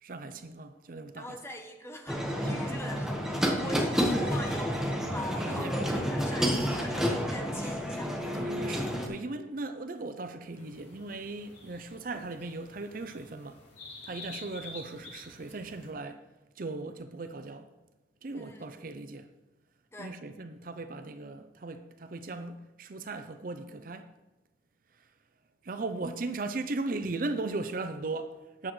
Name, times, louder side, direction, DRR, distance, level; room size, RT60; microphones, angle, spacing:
voice 1, 0.0-1.4 2.4-2.8 5.4-5.9 8.3-13.6 14.0-16.2 16.6-17.7 18.2-19.3 20.0-24.1 25.6-28.7, right 3 dB, 50° right, 0.6 m, -38 dB
voice 2, 1.1-8.1 14.1-14.4 18.3-18.7 19.9-20.2, left 1 dB, 15° left, 1.1 m, -43 dB
sound 1, 2.1-9.1, equal, 5° right, 1.3 m, -30 dB
sound 2, 10.5-15.9, left 3 dB, 75° left, 4.2 m, -49 dB
13.5 x 9.3 x 3.2 m
head